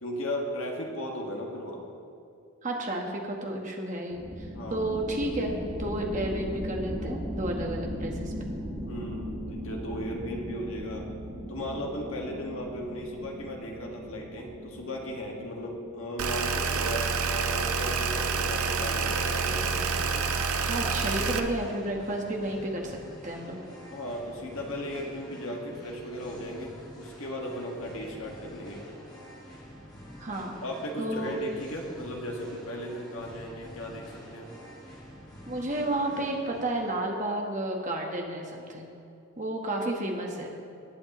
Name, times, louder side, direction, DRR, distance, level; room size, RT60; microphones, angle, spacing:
voice 1, 0.0-1.8 4.5-4.9 8.8-11.1 11.5-19.8 23.9-28.8 30.6-34.5, equal, 65° left, 0 dB, 1.8 m, -36 dB
voice 2, 2.6-5.5 5.8-8.5 20.7-23.0 23.2-23.6 30.2-30.6 31.0-31.4 35.5-38.9 39.4-40.5, right 1 dB, 35° right, 0 dB, 1.3 m, -32 dB
sound 1, 4.1-16.4, equal, 10° right, 2.7 m, -38 dB
sound 2, 16.2-21.4, right 5 dB, 80° right, 0.7 m, -28 dB
Singing, 17.8-37.0, equal, 20° left, 1.8 m, -47 dB
18.5 x 8.5 x 3.1 m, 2.7 s
head